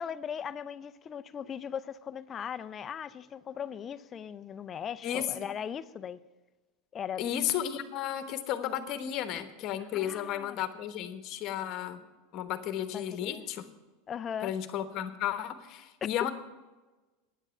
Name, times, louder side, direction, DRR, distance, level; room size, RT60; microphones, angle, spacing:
voice 1, 0.0-6.2 6.9-7.2 9.9-10.6 12.9-13.4 14.1-14.5 16.0-16.1, left 8 dB, 25° left, 0.4 m, -38 dB
voice 2, 7.2-12.0 12.3-13.6 14.4-16.3, left 10 dB, 40° left, 1.1 m, -33 dB
9.9 x 7.4 x 8.9 m
supercardioid pair, 150°, 0 cm